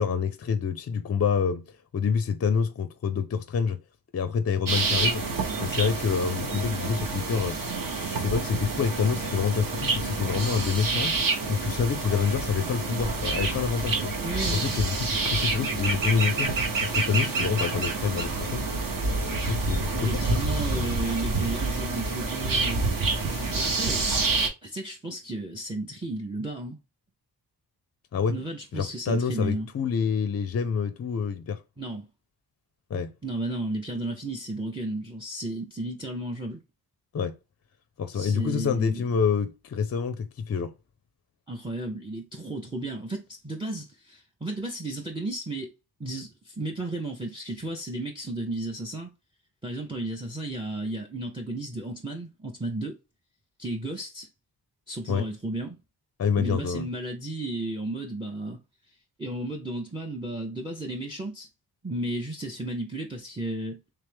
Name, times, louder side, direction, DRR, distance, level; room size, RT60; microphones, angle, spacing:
voice 1, 0.0-1.6 1.9-3.8 4.1-5.2 5.6-7.6 8.1-11.2 11.5-14.1 14.5-20.4 20.7-20.8 28.1-28.4 28.7-31.6 32.9-33.1 37.1-37.3 38.0-40.7 55.1-55.2 56.2-56.9, left 6 dB, 40° left, 0.4 m, -27 dB
sound 1, 4.7-24.5, right 3 dB, 55° right, 0.9 m, -28 dB
voice 2, 14.2-14.7 19.9-22.9 23.2-24.1 24.6-26.8 28.3-29.7 31.8-32.1 33.2-36.6 38.1-39.0 41.5-45.7 46.0-49.1 49.6-53.0 53.6-54.3 54.9-55.8 56.4-58.6 59.2-61.5 61.8-63.8, right 2 dB, 15° right, 0.6 m, -33 dB
3.4 x 3.2 x 3.3 m
wide cardioid pair, 90°, 40 cm